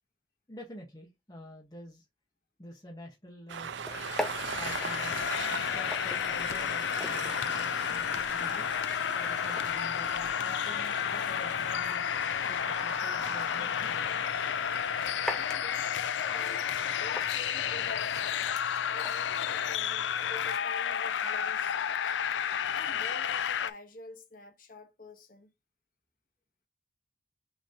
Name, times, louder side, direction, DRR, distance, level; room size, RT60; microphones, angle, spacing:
voice 1, 0.5-2.0 2.6-3.7 4.5-5.2 5.5-8.7 9.1-12.1 12.5-14.0, equal, 20° left, 1.0 m, -48 dB
Train, 3.5-15.4, right 7 dB, 90° right, 0.5 m, -42 dB
sound 1, 3.6-20.6, left 1 dB, 5° left, 0.5 m, -45 dB
sound 2, 3.9-23.7, left 8 dB, 85° left, 0.4 m, -31 dB
voice 2, 15.3-15.9 16.3-18.3 18.9-22.2 22.7-25.5, left 2 dB, 50° left, 1.1 m, -48 dB
6.5 x 3.0 x 2.7 m
head